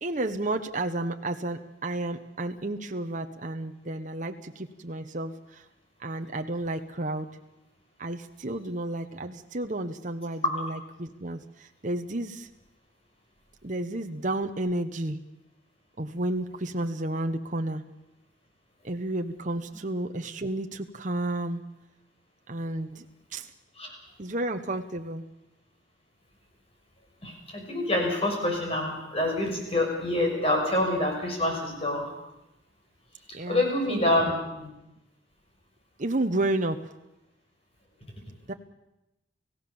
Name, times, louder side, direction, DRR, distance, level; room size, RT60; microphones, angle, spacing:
voice 1, 0.0-5.6 6.0-7.3 8.0-12.5 13.6-15.2 16.0-17.8 18.8-21.6 22.5-23.0 23.3-23.5 24.2-25.3 33.3-34.3 36.0-36.8 38.5-38.6, right 1 dB, 40° right, 6 dB, 1.1 m, -31 dB
voice 2, 27.2-32.1 33.5-34.3 34.6-34.7, left 1 dB, 30° left, 1 dB, 6.2 m, -26 dB
29.5 x 16.0 x 7.1 m, 0.92 s
head